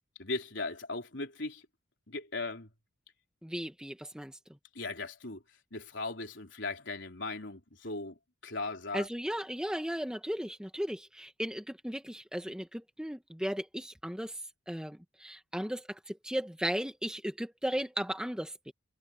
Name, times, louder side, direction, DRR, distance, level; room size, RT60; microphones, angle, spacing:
voice 1, 0.2-1.6 2.1-2.7 4.7-5.4 5.7-8.2 8.4-9.1, left 3 dB, 60° left, 4.0 m, -38 dB
voice 2, 3.4-4.4 8.9-14.4 14.7-18.7, equal, 5° right, 1.2 m, -36 dB
head